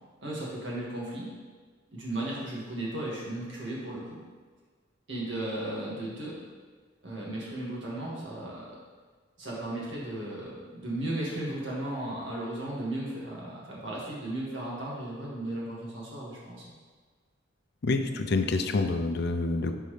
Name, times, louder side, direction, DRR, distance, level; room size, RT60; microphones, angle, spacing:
voice 1, 0.2-1.3 1.9-4.2 5.1-6.4 7.0-8.7 9.4-16.6, right 1 dB, 70° right, -5 dB, 2.1 m, -35 dB
voice 2, 17.8-19.7, left 3 dB, 60° left, 7 dB, 0.5 m, -27 dB
9.5 x 4.6 x 3.3 m, 1.5 s
head